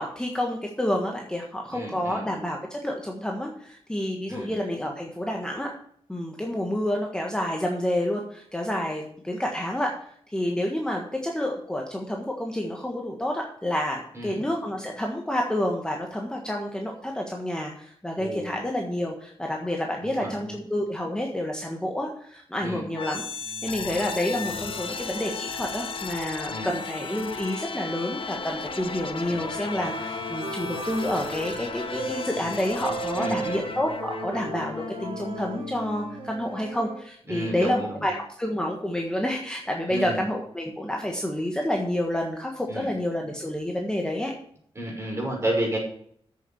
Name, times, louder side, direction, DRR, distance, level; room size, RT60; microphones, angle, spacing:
voice 1, 0.0-5.7 6.1-9.9 10.3-23.2 23.6-44.3, left 1 dB, 10° left, 0 dB, 1.5 m, -29 dB
voice 2, 1.7-2.2 4.3-4.5 14.1-14.4 18.2-18.6 20.0-20.6 22.6-22.9 26.5-26.7 33.1-33.6 37.3-38.1 39.9-40.2 42.7-42.9 44.8-45.8, right 1 dB, 25° right, -2 dB, 5.7 m, -32 dB
sound 1, 22.9-36.8, left 5 dB, 60° left, 1.0 m, -35 dB
sound 2, 28.2-32.3 32.8-37.0, right 5 dB, 60° right, 1.3 m, -37 dB
8.4 x 7.1 x 7.2 m, 0.65 s
wide cardioid pair, 110°, 10 cm